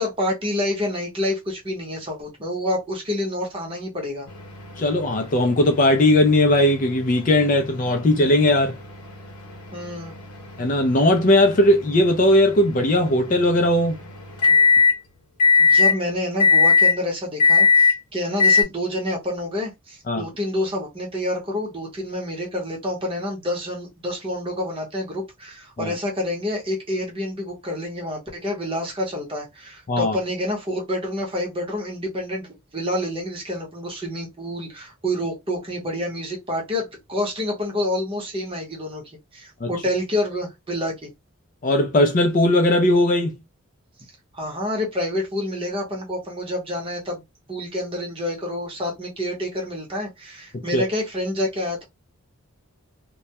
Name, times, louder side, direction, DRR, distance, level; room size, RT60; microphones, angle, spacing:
voice 1, 0.0-4.3 9.7-10.1 15.6-41.1 44.3-47.2 47.5-51.8, left 1 dB, 25° right, 0.8 m, -28 dB
sound 1, 4.3-15.0 15.4-16.0 16.4-17.0 17.4-18.0 18.4-18.6, left 5 dB, 90° left, 0.8 m, -22 dB
voice 2, 4.8-8.8 10.6-14.0 20.1-20.2 25.8-25.9 29.9-30.2 39.6-39.7 41.6-43.4 50.5-50.9, left 1 dB, 35° left, 0.4 m, -18 dB
2.2 x 2.1 x 2.7 m
head